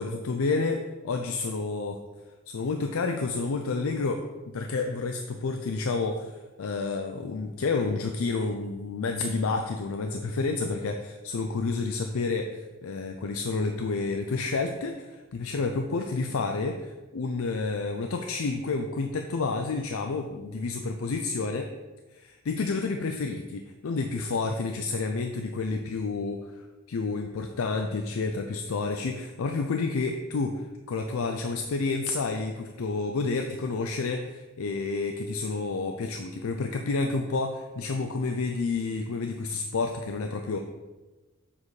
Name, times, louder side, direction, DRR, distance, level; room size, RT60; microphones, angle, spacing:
voice 1, 0.0-2.0 2.5-4.2 4.5-21.7 22.1-40.6, left 3 dB, 75° left, 5 dB, 0.5 m, -30 dB
7.3 x 4.2 x 4.8 m, 1.2 s
head